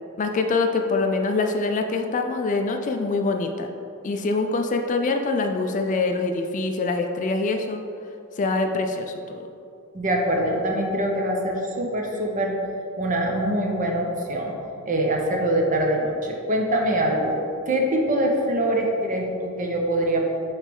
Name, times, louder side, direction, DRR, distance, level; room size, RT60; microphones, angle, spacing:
voice 1, 0.2-3.7 4.0-7.8 8.4-9.4, left 3 dB, 35° left, 5 dB, 0.3 m, -24 dB
voice 2, 9.9-12.5 13.0-14.5 14.9-17.4 17.7-20.3, right 1 dB, 40° right, 0 dB, 0.8 m, -24 dB
6.3 x 3.2 x 5.3 m, 2.6 s
head